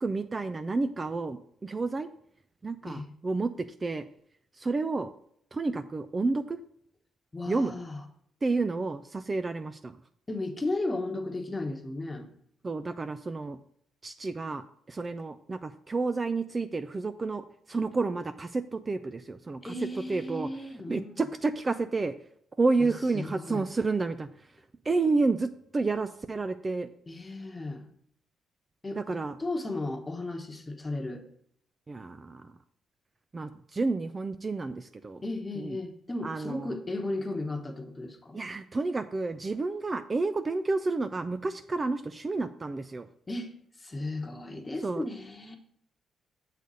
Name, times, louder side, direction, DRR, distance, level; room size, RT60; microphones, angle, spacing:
voice 1, 0.0-2.1 2.6-4.0 4.6-5.1 5.5-6.6 7.5-7.7 8.4-10.0 12.6-13.6 14.0-19.7 20.1-20.5 20.9-22.1 22.6-24.3 24.9-26.9 29.0-29.4 31.9-32.5 33.3-35.2 35.6-35.8 36.2-36.7 38.3-43.1 44.8-45.0, right 3 dB, 30° right, 10 dB, 0.4 m, -30 dB
voice 2, 7.3-8.0 10.3-12.3 19.6-21.2 22.8-23.6 27.1-27.9 28.8-31.2 35.2-38.4 43.3-43.5 43.8-45.6, left 2 dB, 20° left, 4 dB, 1.2 m, -35 dB
6.7 x 4.1 x 6.3 m, 0.67 s
cardioid pair, 90°, 0 cm